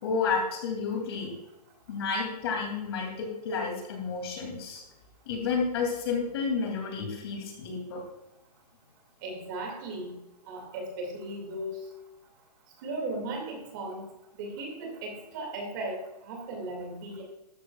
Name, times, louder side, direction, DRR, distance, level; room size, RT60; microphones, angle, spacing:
voice 1, 0.0-1.3 1.9-4.8 5.3-8.0, left 5 dB, 40° left, 1 dB, 2.7 m, -31 dB
voice 2, 9.2-10.2 10.5-11.8 12.8-14.1 14.4-17.2, right 2 dB, 30° right, 1 dB, 2.3 m, -36 dB
13.5 x 12.0 x 2.4 m, 0.91 s
hypercardioid pair, 170°, 21 cm